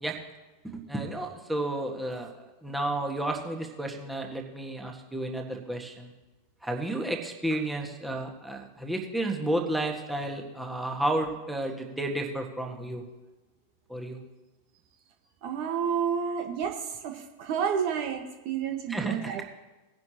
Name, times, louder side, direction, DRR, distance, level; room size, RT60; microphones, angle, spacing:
voice 1, 0.6-6.1 6.6-13.0 13.9-14.2 18.9-19.4, right 1 dB, 5° right, 1 dB, 1.7 m, -32 dB
voice 2, 15.4-19.4, right 7 dB, 45° right, 4 dB, 1.4 m, -30 dB
19.0 x 10.5 x 3.0 m, 1.1 s
figure-of-eight pair, 90°, 0 cm